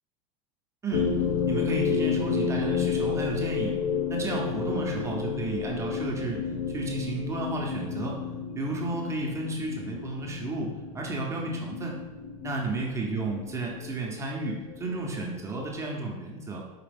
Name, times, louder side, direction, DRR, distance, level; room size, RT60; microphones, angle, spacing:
sound 1, 0.9-15.8, left 6 dB, 85° left, 0.5 m, -31 dB
voice 1, 1.5-3.7 4.1-6.4 6.7-8.2 8.6-12.0 12.4-16.6, right 2 dB, 15° right, -2 dB, 0.6 m, -32 dB
5.0 x 2.9 x 3.4 m, 1.3 s
supercardioid pair, 140°, 18 cm